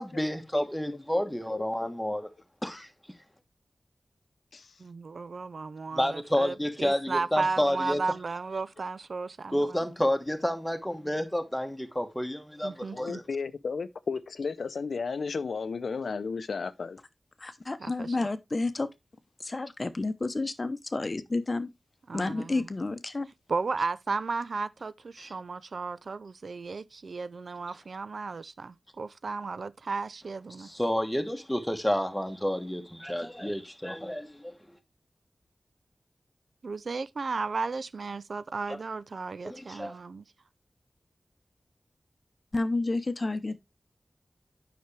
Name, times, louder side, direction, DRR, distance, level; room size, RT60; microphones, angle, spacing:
voice 1, 0.0-2.3 2.6-2.9 5.9-8.0 9.5-13.2 25.2-25.3 30.6-34.5 38.7-38.8 39.4-39.9, left 1 dB, 5° left, 1.3 m, -30 dB
voice 2, 1.1-1.9 4.5-4.7 12.9-17.0, left 5 dB, 90° left, 0.6 m, -34 dB
voice 3, 4.8-9.8 12.6-13.2 17.8-18.3 22.1-22.7 23.5-30.7 36.6-40.2, right 4 dB, 70° right, 0.4 m, -34 dB
voice 4, 17.4-18.9 19.4-21.7 22.1-23.3 42.5-43.6, left 2 dB, 40° left, 0.8 m, -30 dB
9.4 x 5.8 x 3.3 m
wide cardioid pair, 90°, 0 cm